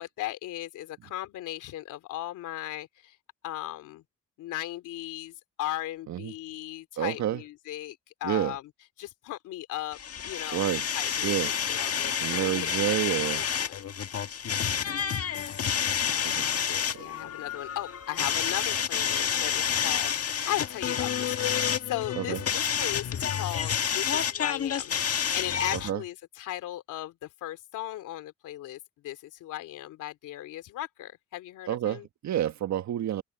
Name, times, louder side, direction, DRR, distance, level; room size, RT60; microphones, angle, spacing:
voice 1, 0.0-3.2 3.4-4.0 4.4-8.6 9.0-13.8 15.6-21.6 21.9-32.1, left 14 dB, 85° left, 3.1 m, -37 dB
voice 2, 7.0-7.4 8.2-8.6 10.5-10.9 11.2-11.6 12.2-13.4 16.2-16.5 16.9-17.3 22.2-22.4 25.7-26.0 31.7-33.2, right 11 dB, 65° right, 1.5 m, -29 dB
sound 1, 9.9-25.9, left 8 dB, 50° left, 1.7 m, -29 dB
cardioid pair, 90°, 30 cm